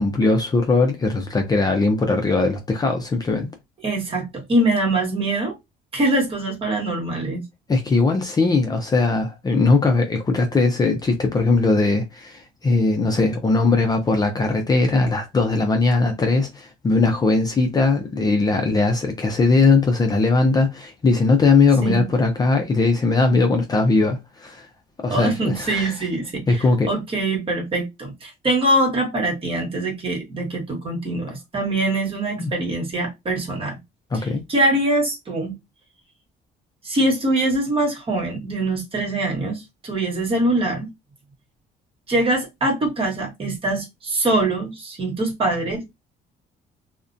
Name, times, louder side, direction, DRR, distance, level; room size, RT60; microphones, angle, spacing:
voice 1, 0.0-3.5 7.7-24.7 25.0-26.0 26.5-26.9 32.4-32.5 34.1-34.4, left 3 dB, 25° left, 0.5 m, -19 dB
voice 2, 3.8-5.5 5.9-7.4 18.2-18.3 21.8-22.1 25.1-33.8 34.1-35.5 36.8-40.9 42.1-45.8, right 1 dB, 35° right, 1.2 m, -23 dB
2.4 x 2.1 x 2.5 m
cardioid pair, 110°, 17 cm